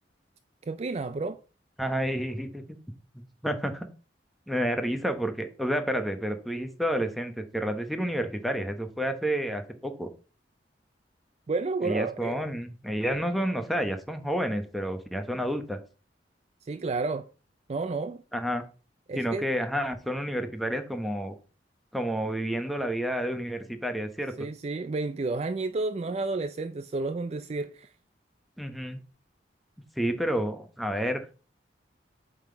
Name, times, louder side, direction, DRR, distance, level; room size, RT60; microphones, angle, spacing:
voice 1, 0.7-1.4 11.5-12.4 16.7-17.2 17.7-18.2 19.1-19.5 24.4-27.9, right 3 dB, 35° right, 0.4 m, -31 dB
voice 2, 1.8-2.8 3.1-3.9 4.5-10.1 11.8-15.8 18.3-18.6 19.1-21.3 21.9-24.5 28.6-29.0 30.0-31.3, equal, ahead, 0.9 m, -30 dB
8.9 x 3.8 x 4.5 m
head